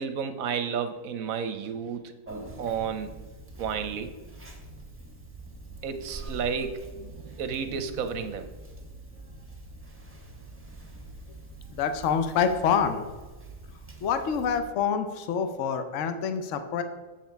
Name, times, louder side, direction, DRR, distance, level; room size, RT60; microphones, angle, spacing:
voice 1, 0.0-2.0 2.6-3.2 3.6-4.1 5.8-8.5, right 6 dB, 65° right, 9 dB, 1.0 m, -32 dB
Conversation, 2.3-14.6, right 2 dB, 10° right, 1.0 m, -45 dB
voice 2, 11.7-13.0 14.0-16.8, left 6 dB, 60° left, 9 dB, 1.0 m, -26 dB
7.6 x 7.4 x 4.5 m, 1.3 s
omnidirectional pair, 1.7 m